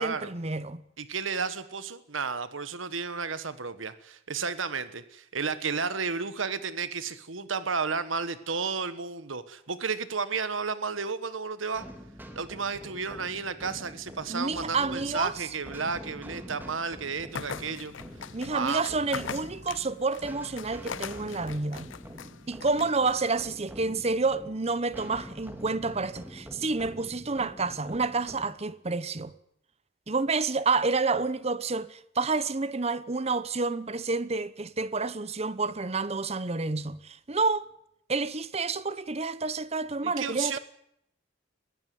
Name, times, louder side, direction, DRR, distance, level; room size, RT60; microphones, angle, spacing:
voice 1, 0.0-0.8 14.3-15.3 18.3-21.9 22.5-29.3 30.1-37.6 38.1-40.6, right 3 dB, 35° right, 0.9 m, -29 dB
voice 2, 1.0-11.8 12.3-17.9 18.5-18.8 40.0-40.6, right 5 dB, 90° right, 1.4 m, -32 dB
sound 1, 11.7-28.5, equal, 10° right, 2.7 m, -45 dB
sound 2, 17.3-23.5, left 6 dB, 80° left, 0.8 m, -41 dB
22.0 x 16.5 x 9.5 m
head